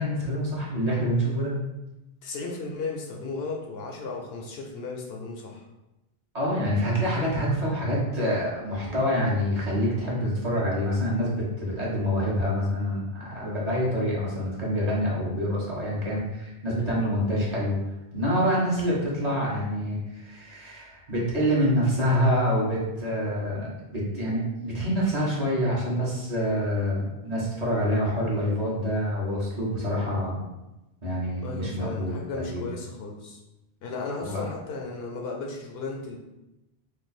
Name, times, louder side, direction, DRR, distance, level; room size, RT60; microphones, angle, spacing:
voice 1, 0.0-1.6 6.3-17.8 18.1-30.4 31.0-32.7 34.2-34.5, equal, 40° right, -6 dB, 1.0 m, -26 dB
voice 2, 2.2-5.6 8.8-9.1 31.4-33.4 33.8-36.2, left 3 dB, 70° left, 0 dB, 0.8 m, -35 dB
2.6 x 2.4 x 4.0 m, 0.98 s
omnidirectional pair, 1.1 m